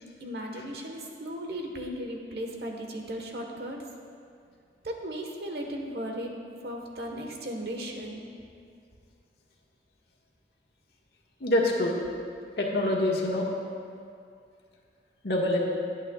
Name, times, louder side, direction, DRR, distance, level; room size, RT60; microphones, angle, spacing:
voice 1, 0.2-3.8 4.8-6.3 6.6-8.3, equal, 65° right, 1 dB, 1.3 m, -36 dB
voice 2, 11.4-12.0 12.6-13.5 15.2-15.6, left 1 dB, 65° left, -2 dB, 1.6 m, -25 dB
20.5 x 8.3 x 2.4 m, 2.3 s
head